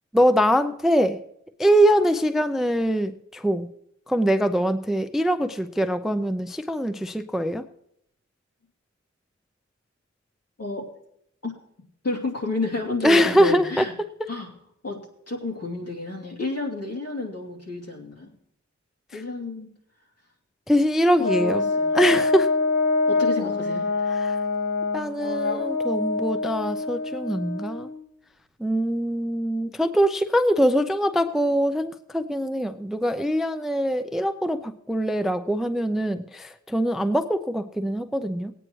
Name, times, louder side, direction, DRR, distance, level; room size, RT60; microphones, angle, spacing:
voice 1, 0.1-1.2 1.6-3.7 4.1-7.7 13.0-14.3 19.1-19.2 20.7-22.5 24.1-24.4 24.9-27.9 28.6-38.5, equal, ahead, 9 dB, 0.4 m, -23 dB
voice 2, 10.6-10.9 11.4-11.5 12.0-13.9 14.3-14.5 14.8-15.0 15.3-18.3 19.1-19.7 21.2-22.0 23.1-23.9, left 3 dB, 55° left, -2 dB, 2.8 m, -30 dB
Brass instrument, 21.2-27.9, left 3 dB, 35° left, 3.4 m, -25 dB
19.5 x 9.0 x 3.1 m, 0.76 s
wide cardioid pair, 95°, 29 cm